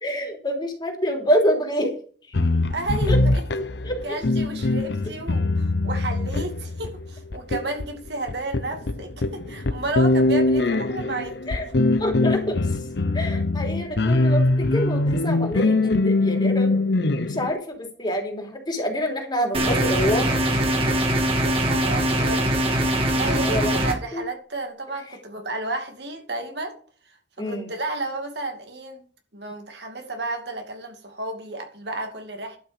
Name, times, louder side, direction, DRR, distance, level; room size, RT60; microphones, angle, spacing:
voice 1, 0.0-1.9 3.1-3.2 3.8-4.0 11.5-11.6 12.0-12.6 13.1-16.7 17.3-20.3 23.3-23.8 24.1-24.2 27.4-27.7, equal, 25° left, 3.3 m, -26 dB
sound 1, 2.3-17.5, left 2 dB, 65° left, 0.8 m, -22 dB
voice 2, 2.7-3.4 4.0-11.4 21.4-22.5 23.1-26.7 27.1-29.0 29.3-32.6, right 2 dB, 65° right, 2.5 m, -32 dB
sound 2, 19.5-23.9, right 1 dB, 30° right, 2.3 m, -22 dB
11.5 x 5.9 x 6.7 m
head